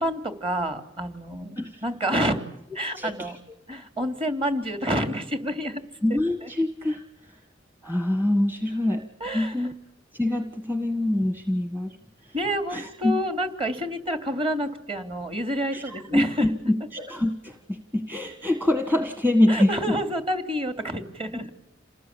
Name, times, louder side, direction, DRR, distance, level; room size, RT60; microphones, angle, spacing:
voice 1, 0.0-2.4 2.7-3.4 3.7-5.8 6.4-6.5 9.2-9.7 12.3-16.5 19.5-21.5, equal, 30° right, 8 dB, 3.1 m, -28 dB
voice 2, 3.0-3.3 6.0-7.0 7.8-9.1 9.3-9.8 10.1-12.0 12.7-13.1 15.7-16.5 16.9-19.7 21.3-21.5, left 1 dB, 10° right, 7 dB, 1.6 m, -25 dB
28.5 x 19.5 x 8.6 m, 0.82 s
head